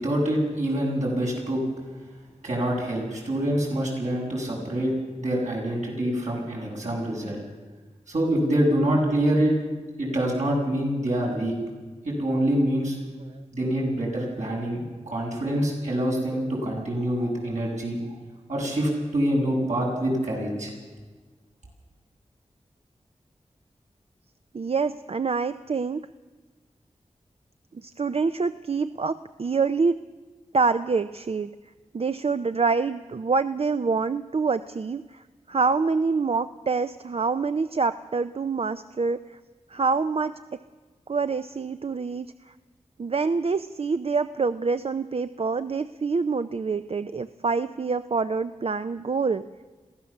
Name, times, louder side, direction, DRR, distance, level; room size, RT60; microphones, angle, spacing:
voice 1, 0.0-1.6 2.4-4.9 5.2-7.4 8.1-9.6 10.0-11.5 12.0-13.0 13.5-18.0 18.5-20.7, right 1 dB, 75° right, -3 dB, 7.5 m, -25 dB
voice 2, 24.5-26.0 27.7-30.0 30.5-31.5 31.9-39.4 39.7-40.4 41.1-42.5 43.0-49.4, right 4 dB, 55° right, 11 dB, 0.5 m, -26 dB
22.5 x 16.0 x 7.2 m, 1.3 s
wide cardioid pair, 80°, 12 cm